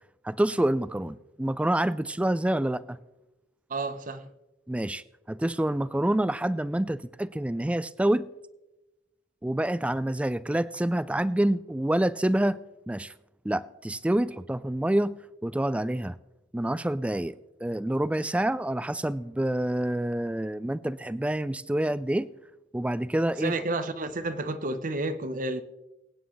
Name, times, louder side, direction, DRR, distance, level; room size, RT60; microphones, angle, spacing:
voice 1, 0.2-3.0 4.7-8.3 9.4-12.6 12.9-13.1 13.4-15.1 15.4-16.1 16.5-22.3 22.7-23.6, right 1 dB, 5° right, 0.3 m, -27 dB
voice 2, 3.7-4.3 23.4-25.6, right 2 dB, 45° right, 0.8 m, -31 dB
23.0 x 9.4 x 3.1 m
head